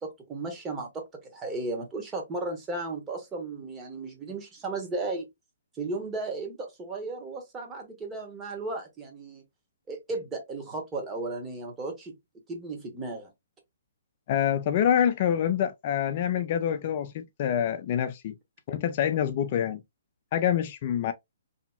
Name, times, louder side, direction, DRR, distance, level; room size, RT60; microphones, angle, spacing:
voice 1, 0.0-5.3 5.8-9.4 9.9-12.1 12.5-13.3, right 3 dB, 15° right, 1.0 m, -35 dB
voice 2, 14.3-18.3 18.7-19.8 20.3-21.1, left 9 dB, 45° left, 0.3 m, -26 dB
2.8 x 2.5 x 2.3 m
hypercardioid pair, 135°, 0 cm